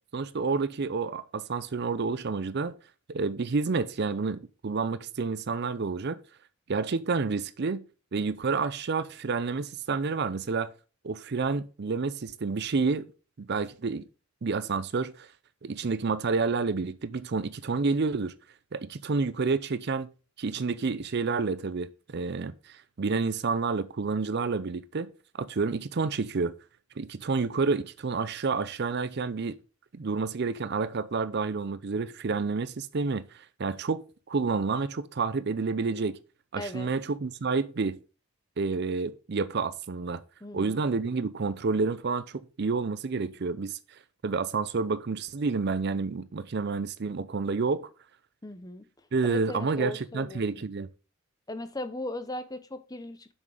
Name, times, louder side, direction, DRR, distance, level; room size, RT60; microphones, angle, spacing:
voice 1, 0.1-2.7 3.1-6.2 6.7-7.8 8.1-10.7 11.0-13.1 13.4-14.0 14.4-15.3 15.6-18.3 18.7-20.1 20.4-25.1 25.4-26.5 27.0-29.6 29.9-36.2 36.5-38.0 38.6-40.2 40.5-43.8 44.2-47.9 49.1-50.9, right 4 dB, 50° right, 0.5 m, -29 dB
voice 2, 36.6-36.9 40.4-40.8 48.4-48.9 49.2-50.7 51.5-53.3, left 1 dB, 15° left, 0.7 m, -38 dB
7.3 x 6.2 x 4.9 m
head